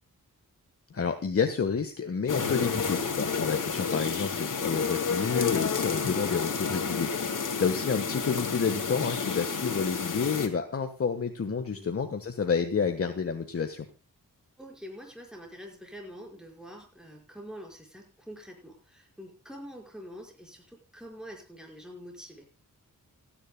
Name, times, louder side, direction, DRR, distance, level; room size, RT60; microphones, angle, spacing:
voice 1, 0.9-7.1 7.6-13.8, left 5 dB, 45° left, 6 dB, 1.3 m, -29 dB
sound 1, 2.3-10.5, left 5 dB, 65° left, 2.6 m, -30 dB
voice 2, 14.6-22.5, equal, ahead, 0 dB, 5.3 m, -46 dB
29.0 x 10.0 x 2.3 m, 0.29 s
wide cardioid pair, 170°, 33 cm